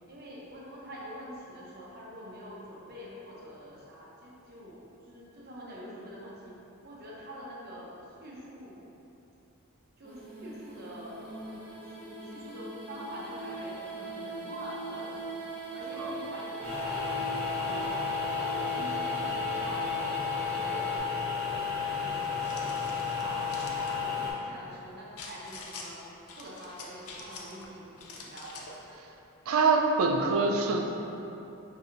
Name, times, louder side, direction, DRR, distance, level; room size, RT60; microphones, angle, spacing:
voice 1, 0.1-6.5 6.8-8.9 10.0-11.5 11.8-15.3 15.7-17.9 18.3-23.4 23.7-26.0 26.3-28.6, equal, 45° right, -5 dB, 0.8 m, -45 dB
sound 1, 10.0-21.0, right 2 dB, 5° left, 0.5 m, -40 dB
sound 2, 16.6-24.3, left 6 dB, 30° right, 1.5 m, -32 dB
sound 3, 22.1-24.0 25.2-25.9 26.3-27.7 28.0-28.8, left 4 dB, 80° left, 0.5 m, -46 dB
voice 2, 29.5-30.9, right 4 dB, 70° right, 3 dB, 0.4 m, -25 dB
6.0 x 2.7 x 2.5 m, 2.9 s
head